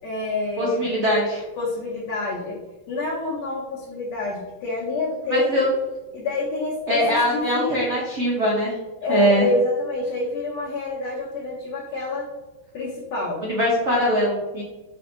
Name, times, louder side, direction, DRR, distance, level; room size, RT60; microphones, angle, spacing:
voice 1, 0.0-0.9 1.6-2.6 2.9-5.5 6.1-7.8 9.0-12.3 12.7-13.4, left 2 dB, 85° left, -4 dB, 1.5 m, -27 dB
voice 2, 0.6-1.4 5.3-5.7 6.9-8.7 9.1-9.5 13.4-14.6, equal, 85° right, -4 dB, 0.6 m, -21 dB
4.9 x 2.6 x 2.5 m, 1.1 s
omnidirectional pair, 2.2 m